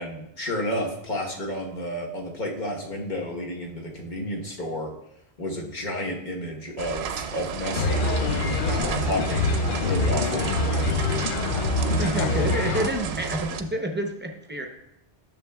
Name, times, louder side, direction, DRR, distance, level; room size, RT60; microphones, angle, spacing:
voice 1, 0.0-4.9 5.4-8.1 8.6-11.2, left 1 dB, 45° left, -1 dB, 1.3 m, -31 dB
sound 1, 6.8-13.6, right 7 dB, 75° right, 0.8 m, -33 dB
sound 2, 7.7-12.9, left 3 dB, 60° left, 0.6 m, -25 dB
voice 2, 12.0-14.7, right 1 dB, 10° right, 3 dB, 0.6 m, -28 dB
10.5 x 6.8 x 2.3 m, 0.80 s
omnidirectional pair, 1.1 m